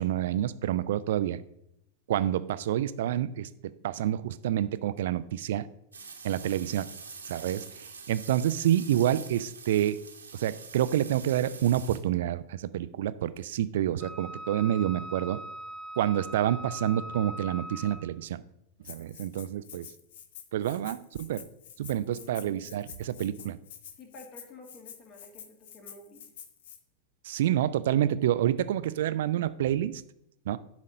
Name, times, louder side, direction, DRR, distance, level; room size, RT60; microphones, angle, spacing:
voice 1, 0.0-1.4 2.1-3.5 3.8-5.7 6.2-6.9 7.3-10.0 10.3-15.4 16.0-18.4 18.9-19.9 20.5-21.4 21.8-23.6 27.2-30.0 30.5-30.6, right 11 dB, 55° right, 15 dB, 0.4 m, -28 dB
sound 1, 5.9-12.0, right 5 dB, 75° right, 1.1 m, -45 dB
Wind instrument woodwind instrument, 14.0-18.2, right 1 dB, 10° left, 0.6 m, -41 dB
Rattle (instrument), 18.8-26.8, left 9 dB, 55° left, 0.7 m, -48 dB
voice 2, 22.1-22.7 24.0-26.2, left 2 dB, 35° left, 3 dB, 2.0 m, -50 dB
10.5 x 4.2 x 5.0 m, 0.78 s
figure-of-eight pair, 90°, 0 cm